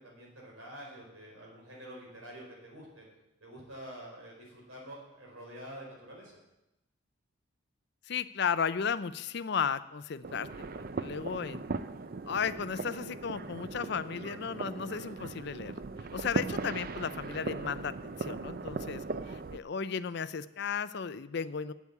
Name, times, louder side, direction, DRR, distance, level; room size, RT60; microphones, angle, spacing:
voice 1, 0.0-3.0 3.4-6.4, equal, 85° right, -2 dB, 4.9 m, -47 dB
voice 2, 8.1-10.5 10.7-11.6 12.3-15.7 16.1-21.7, left 6 dB, 50° left, 15 dB, 0.4 m, -34 dB
sound 1, 10.2-19.6, right 3 dB, 45° right, 0.5 m, -38 dB
8.3 x 8.2 x 8.5 m, 0.93 s
head